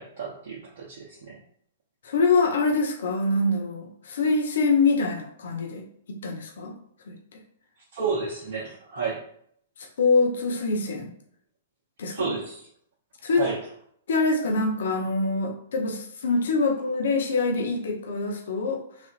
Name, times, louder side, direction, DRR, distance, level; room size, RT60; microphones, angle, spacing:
voice 1, 0.0-1.4 7.9-9.3 12.1-12.7 13.3-13.6, right 5 dB, 60° right, -5 dB, 0.7 m, -31 dB
voice 2, 2.0-6.7 7.1-7.4 9.8-11.1 12.0-12.3 13.2-13.4 14.1-18.8, left 3 dB, 70° left, 0 dB, 0.7 m, -25 dB
3.4 x 2.5 x 2.4 m, 0.67 s
hypercardioid pair, 120°, 0 cm